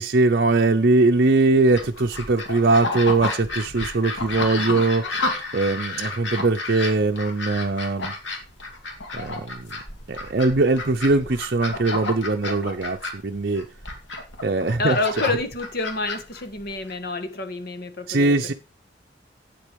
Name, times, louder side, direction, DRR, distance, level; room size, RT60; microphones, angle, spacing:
voice 1, 0.0-5.2 5.5-8.1 9.1-9.7 10.1-13.7 14.4-15.0 18.1-18.5, right 3 dB, 55° right, 0.7 m, -21 dB
sound 1, 1.8-16.9, left 2 dB, 70° left, 2.5 m, -31 dB
voice 2, 14.8-18.4, left 3 dB, 55° left, 1.5 m, -28 dB
9.2 x 7.8 x 5.3 m
head